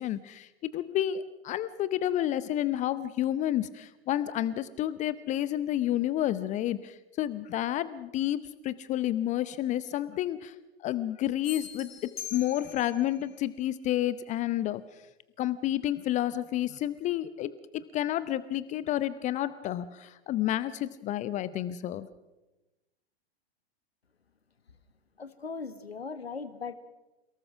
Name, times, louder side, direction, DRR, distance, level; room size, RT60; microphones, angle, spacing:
voice 1, 0.0-10.5 10.8-11.9 12.3-15.0 15.4-22.1, left 12 dB, 25° left, 15 dB, 0.7 m, -30 dB
sound 1, 11.4-13.1, left 11 dB, 50° left, 7.2 m, -42 dB
voice 2, 25.2-26.7, left 5 dB, 80° left, 13 dB, 1.6 m, -38 dB
28.5 x 18.5 x 6.2 m, 1.0 s
figure-of-eight pair, 100°, 31 cm